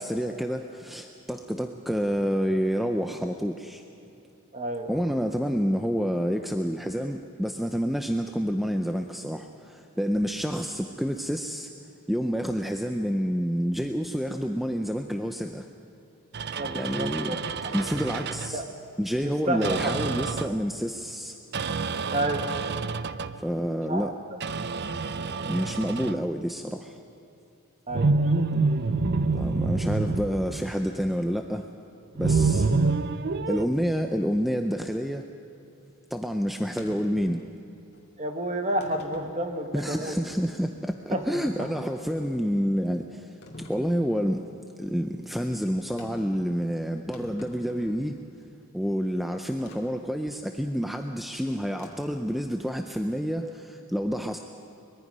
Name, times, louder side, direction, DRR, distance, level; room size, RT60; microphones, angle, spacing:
voice 1, 0.0-3.8 4.9-11.7 12.1-15.7 16.7-17.4 17.7-18.6 19.0-21.4 23.4-24.1 25.4-27.0 29.3-31.7 32.2-32.7 33.5-35.2 36.1-37.4 39.7-44.5 44.8-48.2 48.7-54.4, equal, ahead, 5 dB, 0.5 m, -28 dB
voice 2, 4.5-4.9 16.5-17.4 17.6-17.8 18.5-18.6 19.2-19.9 22.1-22.4 23.9-24.1 25.3-25.5 27.9-28.5 38.2-40.1 41.1-41.7, right 1 dB, 30° right, 5 dB, 1.5 m, -31 dB
sound 1, 16.3-18.6 19.6-20.7 21.5-23.4 24.4-26.3 27.9-31.1 32.2-33.7, right 4 dB, 50° right, 0.5 m, -27 dB
sound 2, 36.8-37.0 37.9-38.1 38.8-39.3 40.0-40.1 43.4-43.8 46.0-46.3 46.7-46.8 47.0-48.1 49.7-49.8 51.8-52.2, left 1 dB, 45° left, 2.5 m, -45 dB
23.5 x 21.5 x 5.5 m, 2.7 s
head